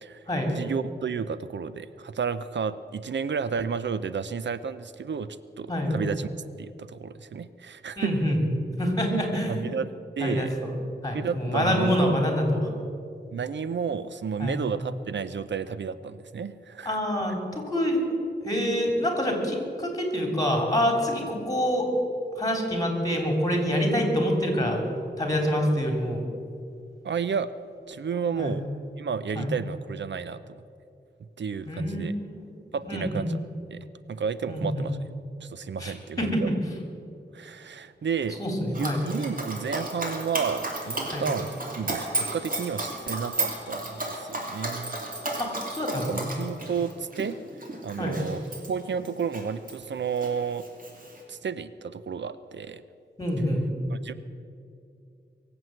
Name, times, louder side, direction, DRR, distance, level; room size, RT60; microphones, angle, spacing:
voice 1, 0.6-6.3 6.6-8.2 9.1-9.2 9.5-9.9 10.2-10.5 11.1-12.1 13.3-17.0 27.0-27.5 27.9-28.6 29.0-30.6 31.4-32.2 32.7-33.4 33.7-35.0 35.4-36.5 37.3-38.4 38.8-41.5 41.8-45.0 46.1-47.4 47.8-48.4 48.7-50.6 51.3-52.8 53.9-54.1, right 6 dB, 80° right, 14 dB, 0.6 m, -32 dB
voice 2, 8.0-8.5 8.8-9.7 10.2-10.7 11.0-12.7 14.4-14.6 16.8-18.0 18.4-21.9 22.3-24.8 25.2-26.3 28.3-28.6 29.3-29.5 31.6-33.3 34.5-34.8 35.8-36.5 38.4-39.0 41.1-41.3 45.4-46.3 48.0-48.2 53.2-53.6, equal, 20° left, 2 dB, 3.4 m, -26 dB
Dog, 38.7-49.8 50.2-51.2, right 2 dB, 50° right, 2.9 m, -33 dB
23.0 x 7.9 x 7.8 m, 2.5 s
wide cardioid pair, 100°, 18 cm